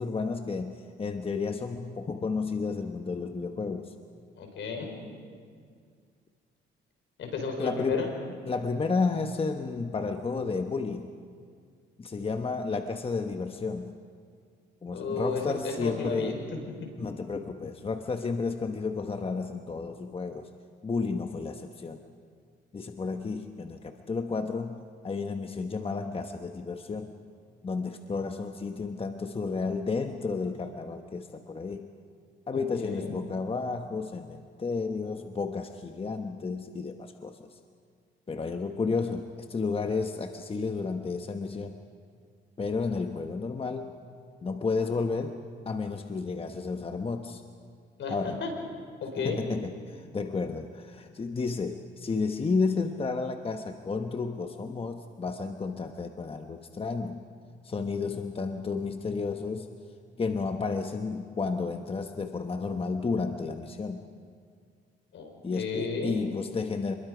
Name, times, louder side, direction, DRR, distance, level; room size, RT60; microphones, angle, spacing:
voice 1, 0.0-3.9 7.6-8.1 8.5-11.1 12.0-13.9 14.8-16.4 17.0-20.5 20.8-22.0 22.7-27.1 27.6-31.9 32.5-37.6 38.3-41.7 42.6-44.0 44.4-47.4 48.1-48.4 49.2-57.2 57.6-59.7 60.2-64.0 65.4-66.9, left 4 dB, 30° left, 6 dB, 1.1 m, -32 dB
voice 2, 4.4-5.0 7.2-8.1 14.9-16.4 32.5-33.1 48.0-48.1 48.4-48.5 49.0-49.4 65.1-66.2, left 4 dB, 70° left, 3 dB, 4.8 m, -33 dB
27.5 x 22.0 x 5.1 m, 2.1 s
cardioid pair, 90°, 20 cm